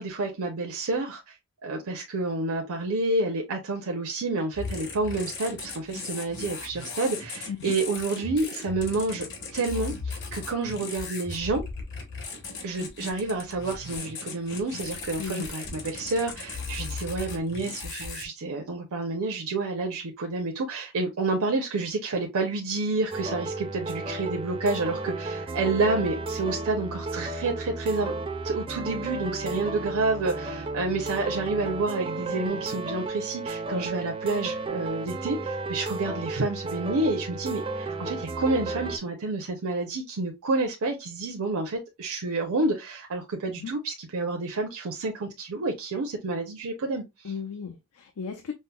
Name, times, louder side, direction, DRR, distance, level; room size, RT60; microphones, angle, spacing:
voice 1, 0.0-1.4 1.6-9.3 9.5-11.6 12.6-28.1 28.4-47.3, right 3 dB, 80° right, 0.6 m, -29 dB
sound 1, 4.5-18.2, left 4 dB, 55° left, 1.0 m, -37 dB
sound 2, 23.1-39.0, right 3 dB, 25° right, 0.4 m, -33 dB
voice 2, 47.2-48.5, left 6 dB, 85° left, 0.5 m, -35 dB
5.3 x 2.0 x 2.2 m
head